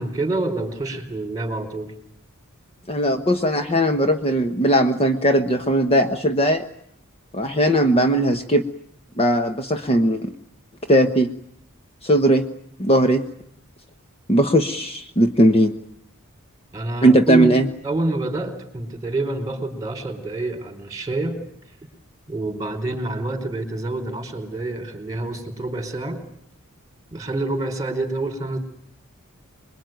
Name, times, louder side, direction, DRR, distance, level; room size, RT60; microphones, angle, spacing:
voice 1, 0.0-1.9 16.7-17.5 17.8-21.4 22.3-26.2 27.1-28.6, right 2 dB, 15° right, 7 dB, 4.4 m, -27 dB
voice 2, 2.9-6.6 7.3-8.6 9.2-10.3 10.9-11.3 12.0-12.4 12.8-13.2 14.3-15.7 17.0-17.7, right 1 dB, 30° left, 6 dB, 1.2 m, -18 dB
27.0 x 22.0 x 9.3 m, 0.70 s
head